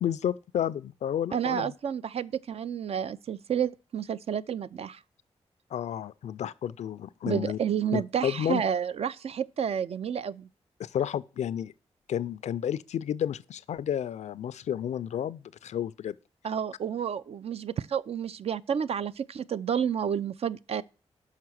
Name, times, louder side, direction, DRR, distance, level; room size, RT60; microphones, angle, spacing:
voice 1, 0.0-1.7 5.7-7.6 7.9-8.6 10.8-11.7 12.1-16.1, left 9 dB, 75° left, 0.4 m, -31 dB
voice 2, 1.3-5.0 7.2-10.5 16.4-20.8, right 8 dB, 60° right, 0.4 m, -30 dB
5.8 x 5.7 x 6.2 m
cardioid pair, 55°, 12 cm